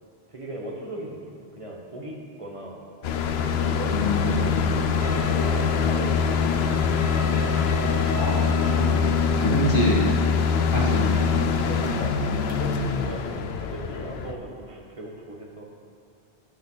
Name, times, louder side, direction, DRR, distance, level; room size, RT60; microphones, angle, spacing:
voice 1, 0.3-2.8 3.4-4.0 4.3-4.6 5.0-6.7 11.6-15.7, right 1 dB, 30° right, -1 dB, 1.6 m, -38 dB
sound 1, 3.0-14.3, left 6 dB, 80° left, 0.9 m, -24 dB
voice 2, 3.9-4.6 8.1-9.1 9.4-10.1 10.7-11.4, equal, 55° left, -4 dB, 2.2 m, -26 dB
sound 2, 5.0-12.8, right 1 dB, 15° right, 0.9 m, -38 dB
13.5 x 8.7 x 4.0 m, 2.3 s
omnidirectional pair, 1.0 m